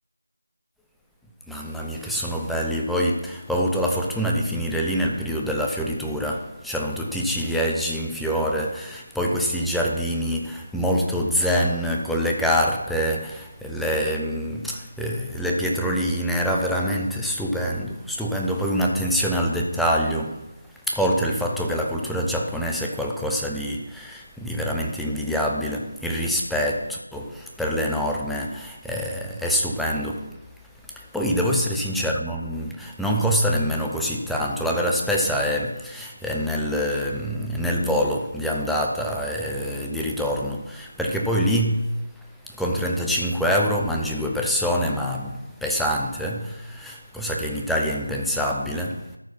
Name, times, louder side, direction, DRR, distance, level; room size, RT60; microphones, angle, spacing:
voice 1, 1.5-20.5 20.9-30.4 31.0-42.1 42.6-49.1, equal, ahead, 0.4 m, -25 dB
13.5 x 4.6 x 5.7 m
figure-of-eight pair, 170°, 0 cm